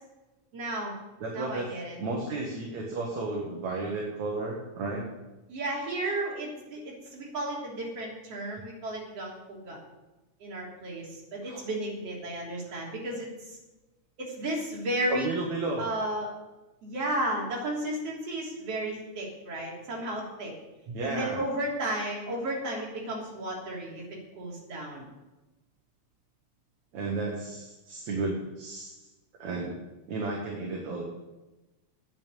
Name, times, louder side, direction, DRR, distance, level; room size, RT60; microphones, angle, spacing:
voice 1, 0.5-1.0 1.3-2.0 5.5-9.8 10.4-13.6 14.2-15.3 15.8-16.3 16.8-20.5 21.0-24.0 24.4-25.1, right 1 dB, 50° right, -3 dB, 4.4 m, -33 dB
voice 2, 1.2-1.7 2.0-5.0 11.4-11.6 15.1-15.8 20.9-21.4 26.9-29.1 29.4-29.8 30.1-31.0, right 3 dB, 70° right, -2 dB, 3.1 m, -33 dB
9.7 x 9.0 x 9.0 m, 1.1 s
omnidirectional pair, 3.5 m